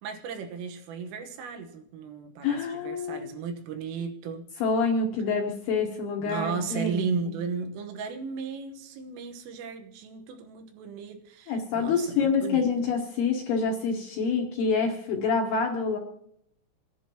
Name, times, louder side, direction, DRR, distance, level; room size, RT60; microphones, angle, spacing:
voice 1, 0.0-4.5 6.2-12.7, right 5 dB, 85° right, 4 dB, 3.9 m, -35 dB
voice 2, 2.4-3.4 4.6-7.0 7.3-7.4 11.5-16.0, left 5 dB, 70° left, 1 dB, 2.6 m, -27 dB
28.0 x 11.0 x 3.0 m, 0.74 s
omnidirectional pair, 5.9 m